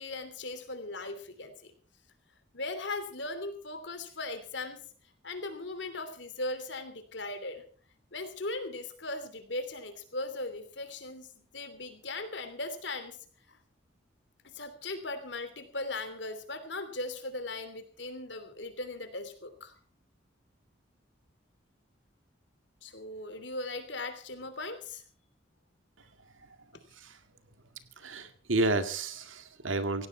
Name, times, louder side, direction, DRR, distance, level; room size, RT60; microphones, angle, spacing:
voice 1, 0.0-1.7 2.5-4.8 5.2-7.6 8.1-13.2 13.5-13.6 14.5-19.7 22.8-25.0, left 2 dB, 65° left, 9 dB, 3.0 m, -38 dB
voice 2, 28.0-30.1, right 2 dB, 90° right, 9 dB, 2.0 m, -31 dB
17.0 x 17.0 x 4.4 m, 0.44 s
head